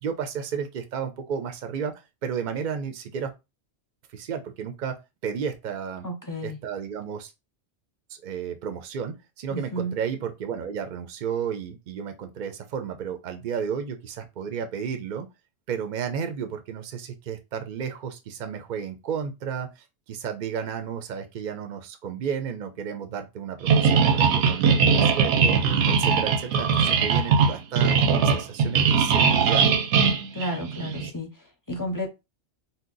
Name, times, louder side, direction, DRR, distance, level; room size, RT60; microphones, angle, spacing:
voice 1, 0.0-1.9 2.2-3.3 4.1-4.9 5.2-6.1 6.4-7.3 8.1-15.3 15.7-25.6 25.9-28.0 28.2-29.7, right 7 dB, 55° right, 0.6 m, -32 dB
voice 2, 6.0-6.6 9.5-10.0 30.3-31.3 31.7-32.1, equal, 25° left, 0.5 m, -31 dB
sound 1, 23.7-31.1, right 6 dB, 85° right, 0.9 m, -20 dB
2.8 x 2.2 x 3.8 m
omnidirectional pair, 1.2 m